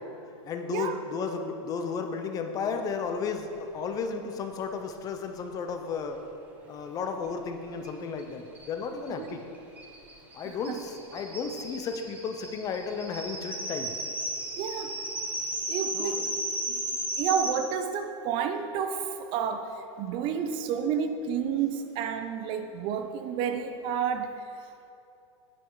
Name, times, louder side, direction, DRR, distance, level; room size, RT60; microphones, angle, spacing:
voice 1, 0.4-6.2 6.7-9.4 10.3-13.9 15.9-16.2, left 5 dB, 20° left, 6 dB, 0.5 m, -33 dB
sound 1, 7.8-7.9 8.2-8.3 8.5-17.5, right 1 dB, 10° right, 1.0 m, -35 dB
voice 2, 10.4-10.8 14.6-14.9 15.7-16.3 16.7-16.9 17.2-19.7 20.0-24.4, right 7 dB, 35° right, 8 dB, 0.4 m, -30 dB
9.2 x 5.7 x 4.6 m, 2.6 s
supercardioid pair, 150°, 16 cm